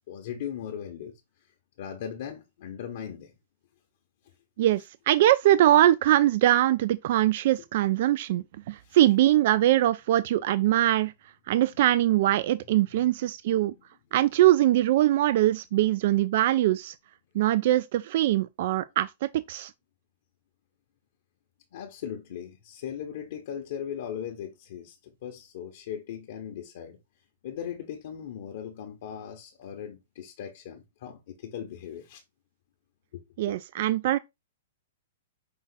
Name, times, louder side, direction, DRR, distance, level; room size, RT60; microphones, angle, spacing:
voice 1, 0.1-1.1 1.8-3.4 8.8-9.0 11.7-12.1 12.9-13.2 13.5-13.8 21.7-27.0 27.4-32.2 33.1-33.5, left 9 dB, 50° left, 0.9 m, -39 dB
voice 2, 4.6-11.1 11.5-13.7 14.1-16.9 17.3-19.1 19.5-19.7 33.4-34.2, right 13 dB, 50° right, 0.3 m, -22 dB
5.5 x 2.4 x 4.0 m
hypercardioid pair, 165°, 0 cm